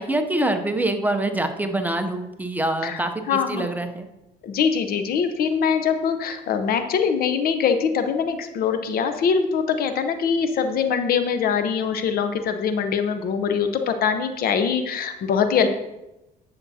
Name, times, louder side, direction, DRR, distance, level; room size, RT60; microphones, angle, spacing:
voice 1, 0.0-4.1 15.6-15.7, right 1 dB, 10° right, 6 dB, 0.7 m, -25 dB
voice 2, 3.3-3.7 4.4-15.7, left 6 dB, 65° left, 8 dB, 0.8 m, -23 dB
9.5 x 7.0 x 2.8 m, 0.94 s
cardioid pair, 110°, 17 cm